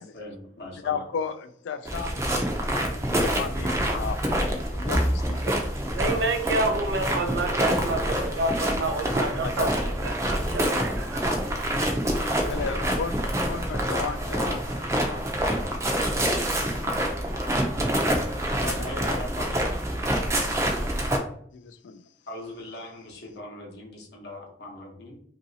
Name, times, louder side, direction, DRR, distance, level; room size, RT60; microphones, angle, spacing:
voice 1, 0.1-1.0 18.7-19.8 22.3-25.2, left 1 dB, 65° left, 0 dB, 0.9 m, -40 dB
voice 2, 0.8-5.5 9.4-9.7 12.5-14.7 18.5-19.1 21.5-22.0, left 6 dB, 90° left, 9 dB, 0.3 m, -34 dB
sound 1, 1.8-21.2, right 1 dB, 15° right, 0.4 m, -26 dB
voice 3, 5.9-11.2, right 2 dB, 75° right, 5 dB, 0.5 m, -29 dB
2.9 x 2.6 x 2.7 m, 0.63 s
head